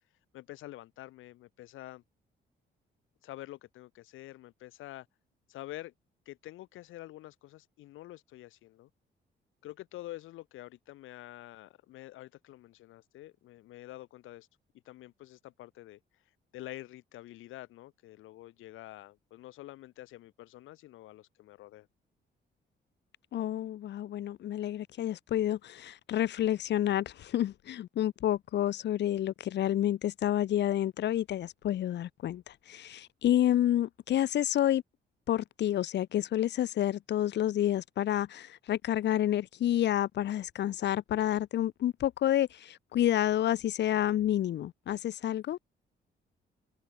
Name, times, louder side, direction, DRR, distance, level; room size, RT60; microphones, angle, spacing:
voice 1, 0.3-2.0 3.2-5.1 5.5-5.9 6.3-8.9 9.6-14.5 14.9-16.0 16.5-21.9, left 15 dB, 90° left, 7.2 m, -47 dB
voice 2, 23.3-34.8 35.3-45.6, left 12 dB, 60° left, 0.7 m, -29 dB
cardioid pair, 90°, 20 cm